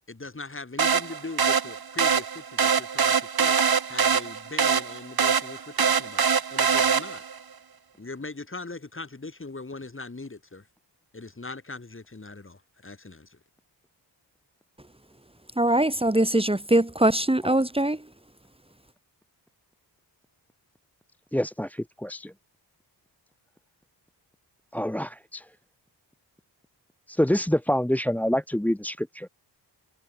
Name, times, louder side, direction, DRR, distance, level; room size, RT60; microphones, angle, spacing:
voice 1, 0.1-7.3 8.0-10.7 11.1-13.4, left 3 dB, 30° left, 7.9 m, -40 dB
sound 1, 0.8-7.4, right 6 dB, 55° right, 2.8 m, -24 dB
voice 2, 15.5-18.1, right 1 dB, 15° right, 3.4 m, -22 dB
voice 3, 21.3-22.3 24.7-25.4 27.1-29.3, equal, 5° left, 0.8 m, -26 dB
wide cardioid pair, 90°, 43 cm